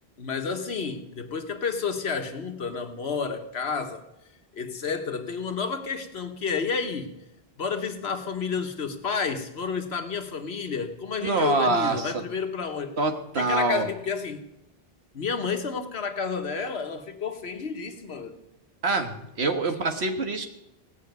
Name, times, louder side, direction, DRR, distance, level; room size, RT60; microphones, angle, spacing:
voice 1, 0.2-4.0 4.5-7.1 7.6-13.0 13.4-14.4 15.1-18.4, left 5 dB, 80° left, 6 dB, 1.5 m, -30 dB
voice 2, 11.2-12.2 13.0-13.9 18.8-20.5, right 3 dB, 85° right, 6 dB, 1.7 m, -25 dB
17.5 x 6.3 x 9.2 m, 0.90 s
omnidirectional pair, 1.1 m